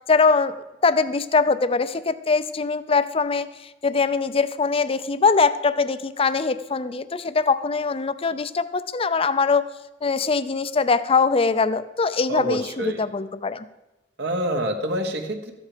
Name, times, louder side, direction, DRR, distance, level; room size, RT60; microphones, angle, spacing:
voice 1, 0.1-0.5 0.8-9.7 10.0-13.7, left 4 dB, 35° left, 13 dB, 0.5 m, -22 dB
voice 2, 12.3-13.0 14.2-15.5, equal, 70° right, 4 dB, 1.2 m, -27 dB
13.5 x 8.4 x 5.0 m, 1.0 s
head